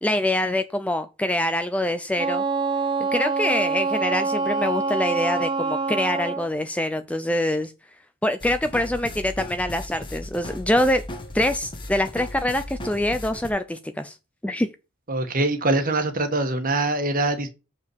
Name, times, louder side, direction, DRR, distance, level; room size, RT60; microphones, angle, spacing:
voice 1, 0.0-2.4 3.1-7.7 8.2-11.0 11.3-14.2 14.4-14.7, left 1 dB, 5° left, 0.5 m, -24 dB
Wind instrument woodwind instrument, 2.2-6.5, right 4 dB, 20° right, 0.9 m, -25 dB
sound 1, 8.4-13.5, left 1 dB, 25° left, 1.5 m, -36 dB
voice 2, 15.1-17.5, right 2 dB, 40° right, 1.5 m, -23 dB
7.1 x 5.4 x 4.7 m
head